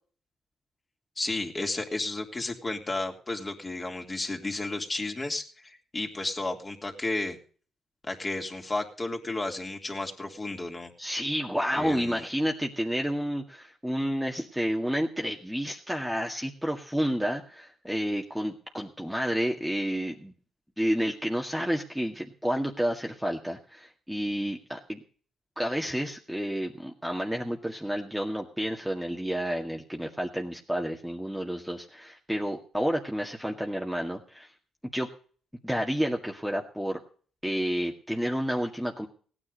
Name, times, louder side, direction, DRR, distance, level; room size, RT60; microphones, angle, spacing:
voice 1, 1.2-7.4 8.0-10.9 11.7-12.2, left 2 dB, 25° left, 3 dB, 3.3 m, -33 dB
voice 2, 11.0-20.3 20.8-25.0 25.6-34.5 34.9-35.1 35.6-37.0 37.4-39.1, equal, ahead, 1 dB, 2.0 m, -30 dB
17.0 x 9.9 x 5.4 m, 0.43 s
cardioid pair, 90°, 0 cm